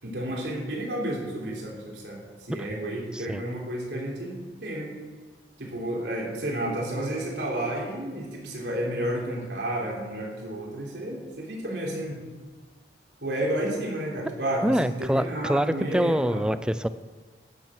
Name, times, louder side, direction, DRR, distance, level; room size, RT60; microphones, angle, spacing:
voice 1, 0.0-4.9 5.6-12.2 13.2-16.4, right 1 dB, 80° right, -2 dB, 3.4 m, -31 dB
voice 2, 14.6-16.9, equal, 5° right, 13 dB, 0.3 m, -25 dB
11.5 x 7.6 x 7.5 m, 1.4 s
head